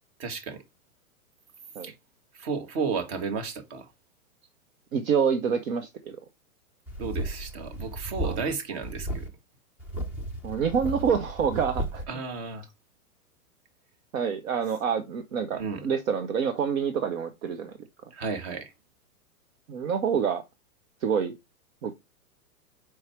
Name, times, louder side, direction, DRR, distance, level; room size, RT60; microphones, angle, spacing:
voice 1, 0.2-0.6 1.8-1.9 2.3-3.9 7.0-9.3 12.1-12.6 15.5-15.9 18.1-18.7, right 5 dB, 45° right, 1.6 m, -33 dB
voice 2, 4.9-6.2 8.2-8.4 10.4-12.0 14.1-17.7 19.7-20.4 21.0-21.4 21.8-21.9, right 7 dB, 65° right, 1.0 m, -27 dB
sound 1, 6.9-8.5 8.8-9.3 9.8-12.0, right 1 dB, 5° right, 0.4 m, -34 dB
4.8 x 4.7 x 4.5 m
hypercardioid pair, 120°, 44 cm